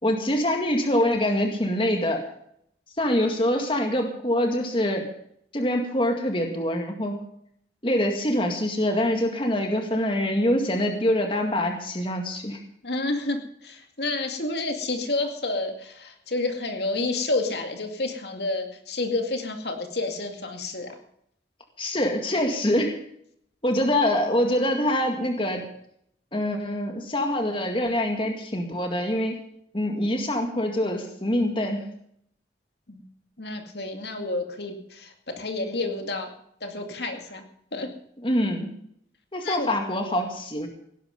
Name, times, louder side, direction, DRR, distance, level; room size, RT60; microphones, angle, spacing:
voice 1, 0.0-2.2 3.0-5.1 5.5-7.2 7.8-12.6 21.8-23.0 23.6-25.7 26.3-29.4 29.7-31.9 38.2-38.7 39.3-40.7, left 1 dB, 30° left, 3 dB, 2.0 m, -25 dB
voice 2, 12.8-21.0 32.9-33.0 33.4-36.3 36.6-37.4 37.7-37.9 39.4-39.7, left 2 dB, 65° left, 4 dB, 2.3 m, -29 dB
17.5 x 11.5 x 5.2 m, 0.68 s
head